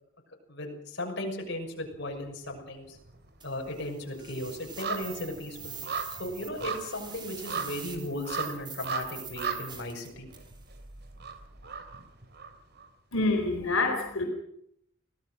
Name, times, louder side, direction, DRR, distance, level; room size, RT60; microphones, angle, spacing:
voice 1, 0.5-3.0 3.4-5.9 6.2-10.3, left 1 dB, 55° left, 1 dB, 6.3 m, -36 dB
sound 1, 1.8-2.6 2.9-12.9 13.2-13.3, right 5 dB, 55° right, 3.0 m, -38 dB
sound 2, 3.4-10.6, right 6 dB, 20° right, 3.3 m, -45 dB
voice 2, 13.1-14.3, left 2 dB, 85° left, 2 dB, 4.5 m, -26 dB
25.0 x 18.0 x 6.6 m, 0.70 s
head